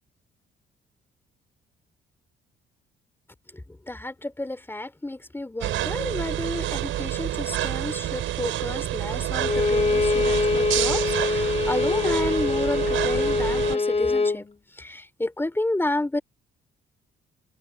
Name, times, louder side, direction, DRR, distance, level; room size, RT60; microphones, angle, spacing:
voice 1, 3.9-14.4 14.8-16.2, left 1 dB, 10° left, 3.8 m, -31 dB
sound 1, 5.6-13.8, right 13 dB, 85° right, 5.7 m, -28 dB
Bowed string instrument, 9.4-14.4, left 4 dB, 30° left, 1.8 m, -24 dB
cardioid pair, 90°, 20 cm